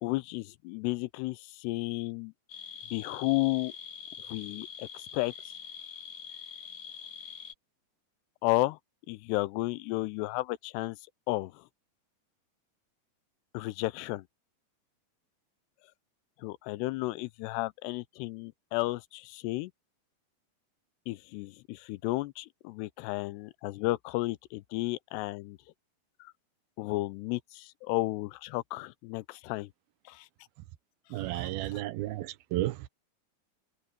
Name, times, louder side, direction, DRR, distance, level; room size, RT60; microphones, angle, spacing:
voice 1, 0.0-2.3 2.9-3.7 4.3-5.6 8.4-8.8 9.1-11.0 11.3-11.6 13.5-14.2 16.4-19.7 21.1-25.6 26.2-26.3 26.8-29.7 30.1-30.3 31.2-31.8, left 20 dB, 85° left, 2.7 m, -33 dB
sound 1, 2.5-7.5, left 8 dB, 60° left, 2.1 m, -44 dB
voice 2, 31.1-32.8, right 16 dB, 75° right, 2.4 m, -32 dB
omnidirectional pair, 4.8 m